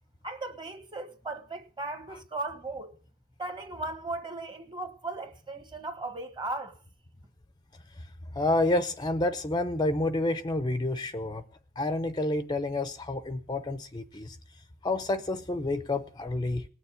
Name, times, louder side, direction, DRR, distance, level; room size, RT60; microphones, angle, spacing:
voice 1, 0.2-3.0 3.4-6.8, right 2 dB, 20° right, 1.4 m, -37 dB
voice 2, 7.9-11.4 11.8-16.7, left 2 dB, 20° left, 0.6 m, -29 dB
19.5 x 7.0 x 9.3 m
head